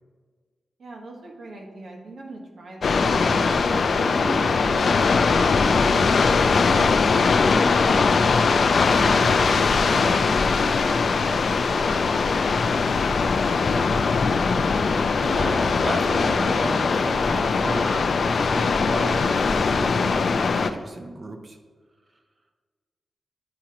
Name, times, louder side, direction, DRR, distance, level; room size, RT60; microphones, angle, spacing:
voice 1, 0.8-3.1 3.6-8.7 9.4-13.9, right 2 dB, 70° right, -1 dB, 1.2 m, -40 dB
sound 1, 2.8-20.7, left 4 dB, 55° left, 0.3 m, -21 dB
voice 2, 3.3-3.6 8.9-9.4 14.6-21.6, right 2 dB, 35° right, 5 dB, 0.5 m, -34 dB
9.0 x 4.9 x 2.9 m, 1.5 s
wide cardioid pair, 165°, 0 cm